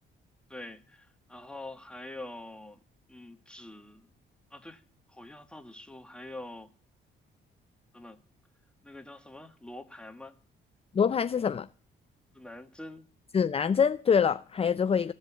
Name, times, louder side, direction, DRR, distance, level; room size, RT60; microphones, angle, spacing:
voice 1, 0.5-2.8 3.1-4.1 4.5-4.8 5.1-6.7 7.9-8.2 8.8-10.4 12.3-13.0, left 1 dB, 5° left, 1.3 m, -45 dB
voice 2, 10.9-11.7 13.3-15.1, left 6 dB, 30° left, 0.5 m, -25 dB
15.0 x 5.3 x 8.1 m
cardioid pair, 90°, 20 cm